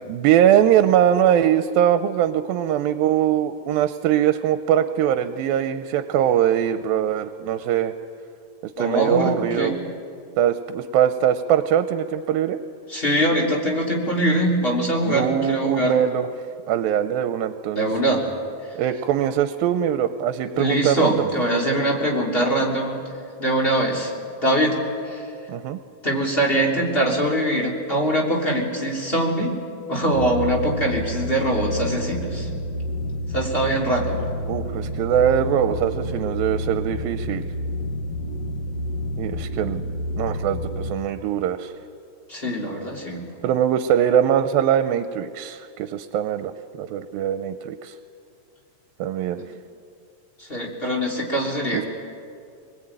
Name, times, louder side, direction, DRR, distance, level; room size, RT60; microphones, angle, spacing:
voice 1, 0.1-7.9 8.8-9.7 10.4-12.6 15.1-16.3 16.7-17.9 18.8-21.3 25.5-25.8 34.5-37.5 39.2-39.8 40.2-41.7 43.4-47.9 49.0-49.4 51.7-51.9, right 10 dB, 85° right, 10 dB, 2.5 m, -22 dB
voice 2, 8.8-9.8 12.9-15.9 17.7-18.2 20.5-23.0 23.4-24.1 24.4-24.7 25.1-25.2 26.0-29.5 29.9-32.5 33.3-34.2 42.3-43.2 49.4-49.5 50.5-51.9, right 1 dB, 15° left, -2 dB, 3.3 m, -22 dB
sound 1, 30.1-40.9, left 1 dB, 55° left, 2.4 m, -29 dB
24.5 x 21.0 x 9.0 m, 2.4 s
omnidirectional pair, 4.1 m